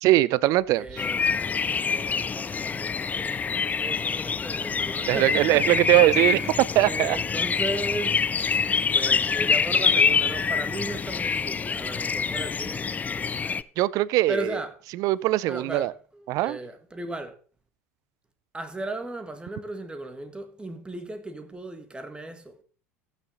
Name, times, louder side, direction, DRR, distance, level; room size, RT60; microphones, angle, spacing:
voice 1, 0.0-1.1 5.1-6.4 6.8-7.2 13.8-14.6 15.0-15.9 16.3-16.6, right 17 dB, 50° right, 0.5 m, -21 dB
voice 2, 0.8-1.2 1.8-5.8 6.1-6.5 6.8-8.6 8.9-13.6 14.3-14.7 15.5-17.3 18.5-22.6, right 1 dB, 15° right, 1.8 m, -36 dB
sound 1, 1.0-13.6, left 5 dB, 20° left, 0.4 m, -26 dB
14.5 x 6.7 x 3.9 m
hypercardioid pair, 75°, 8 cm